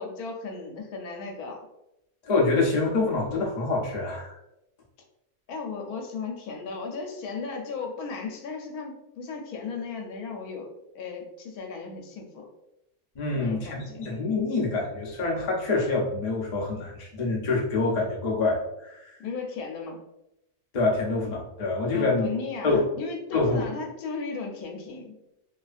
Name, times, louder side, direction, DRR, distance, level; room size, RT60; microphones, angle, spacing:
voice 1, 0.0-1.7 5.5-10.7 10.9-12.5 13.3-14.1 19.2-20.0 21.9-25.2, left 4 dB, 90° left, 2 dB, 1.1 m, -36 dB
voice 2, 2.2-4.4 13.2-19.2 20.7-22.3 22.6-22.8 23.3-23.7, left 3 dB, 60° left, -2 dB, 0.4 m, -26 dB
2.7 x 2.4 x 2.4 m, 0.86 s
omnidirectional pair, 1.6 m